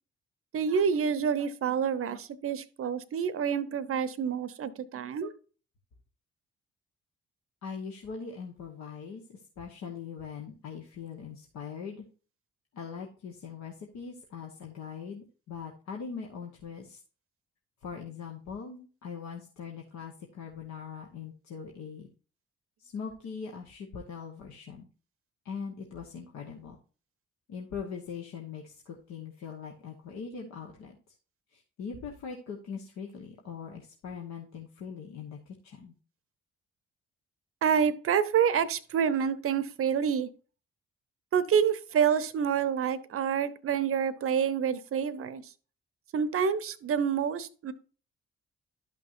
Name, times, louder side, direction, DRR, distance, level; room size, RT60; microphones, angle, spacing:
voice 1, 0.5-5.3 37.6-40.3 41.3-45.4 46.1-47.7, right 7 dB, 45° right, 15 dB, 0.8 m, -28 dB
voice 2, 7.6-12.0 12.7-17.0 17.8-22.1 22.8-24.9 25.4-26.8 27.5-31.2 31.5-35.9, left 6 dB, 60° left, 0 dB, 1.3 m, -41 dB
12.0 x 5.9 x 2.6 m, 0.38 s
hypercardioid pair, 40°, 31 cm